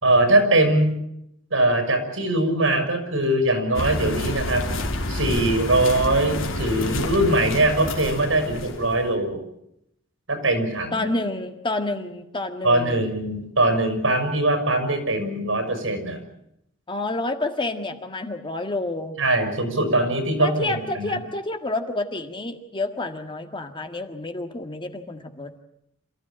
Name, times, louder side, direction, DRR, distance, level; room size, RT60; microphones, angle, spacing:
voice 1, 0.0-1.0 1.5-4.7 5.1-9.4 10.3-11.1 12.6-16.2 19.2-21.2, right 1 dB, 80° right, 7 dB, 6.1 m, -21 dB
sound 1, 3.7-9.0, left 1 dB, 80° left, 3.5 m, -28 dB
voice 2, 10.9-13.1 16.9-19.2 20.4-25.6, left 2 dB, 25° left, 6 dB, 1.7 m, -29 dB
27.5 x 14.5 x 9.0 m, 0.78 s
head